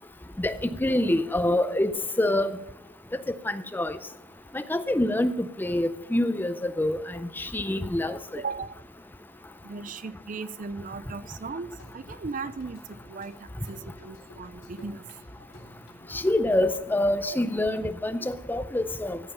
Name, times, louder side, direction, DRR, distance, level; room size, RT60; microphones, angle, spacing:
voice 1, 0.4-2.6 3.4-4.0 4.5-8.4 16.1-19.2, left 1 dB, 10° left, 12 dB, 0.5 m, -26 dB
voice 2, 8.4-8.8 9.6-11.7 11.9-15.0, right 4 dB, 40° right, 15 dB, 0.5 m, -37 dB
sound 1, 11.6-17.2, left 1 dB, 80° left, 3.3 m, -50 dB
14.5 x 5.6 x 7.0 m, 0.94 s
head